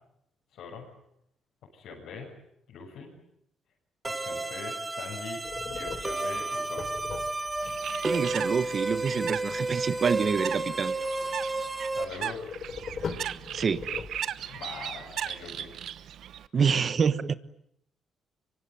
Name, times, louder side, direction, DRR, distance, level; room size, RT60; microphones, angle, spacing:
voice 1, 0.5-0.9 1.7-2.3 2.7-3.2 4.1-6.8 11.7-12.4 14.5-15.7 16.5-16.9, left 5 dB, 80° left, -4 dB, 7.2 m, -42 dB
sound 1, 4.0-12.0, right 2 dB, 20° right, 2.2 m, -32 dB
sound 2, 5.4-7.8 12.3-14.6, left 5 dB, 50° left, 4.1 m, -39 dB
Bird, 7.6-16.5, right 10 dB, 70° right, 1.1 m, -38 dB
voice 2, 8.0-10.9 13.5-13.9 16.5-17.3, right 6 dB, 45° right, 14 dB, 1.3 m, -27 dB
24.5 x 24.0 x 9.3 m, 0.76 s
cardioid pair, 90°, 0 cm